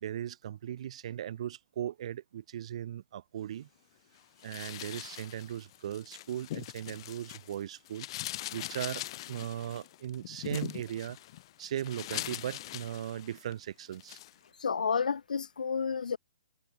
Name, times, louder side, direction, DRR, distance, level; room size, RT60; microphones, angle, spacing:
voice 1, 0.0-3.7 4.4-8.1 8.5-11.2 11.6-14.2, right 11 dB, 50° right, 2.9 m, -38 dB
sound 1, 4.4-7.6 7.8-13.5 13.9-14.3, left 15 dB, 40° left, 5.2 m, -42 dB
voice 2, 14.6-16.2, left 6 dB, 85° left, 0.8 m, -30 dB
hypercardioid pair, 155°, 4 cm